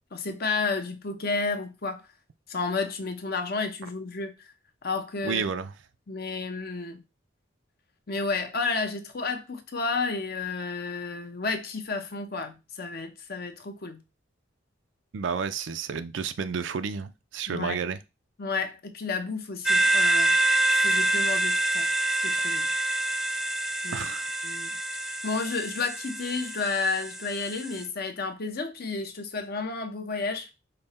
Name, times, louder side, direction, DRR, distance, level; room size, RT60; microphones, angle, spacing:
voice 1, 0.1-2.1 2.5-4.5 4.8-5.4 6.1-7.0 8.1-14.0 17.5-17.8 18.4-20.4 20.7-21.9 22.2-22.7 23.8-24.0 24.4-24.7 25.1-30.5, left 4 dB, 55° left, 0.8 m, -31 dB
voice 2, 5.2-5.7 15.1-18.0 23.9-24.3, right 6 dB, 75° right, 0.4 m, -31 dB
sound 1, 19.7-27.8, right 2 dB, ahead, 0.4 m, -26 dB
5.4 x 2.1 x 4.1 m
head